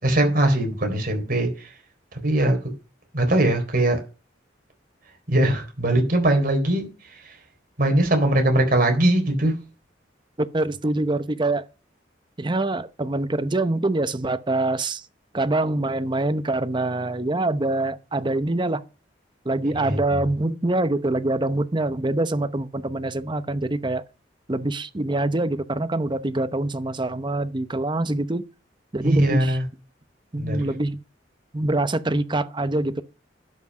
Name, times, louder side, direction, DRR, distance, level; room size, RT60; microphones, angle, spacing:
voice 1, 0.0-1.5 2.2-2.6 3.1-4.0 5.3-6.9 7.8-9.5 19.7-19.9 29.0-29.6 30.4-30.7, right 1 dB, 50° right, 3.8 m, -20 dB
voice 2, 10.5-11.6 12.4-15.0 15.3-18.8 19.4-24.0 24.5-28.4 28.9-29.6 30.3-31.0 31.5-33.0, right 2 dB, 25° right, 0.8 m, -25 dB
12.0 x 6.0 x 6.1 m
head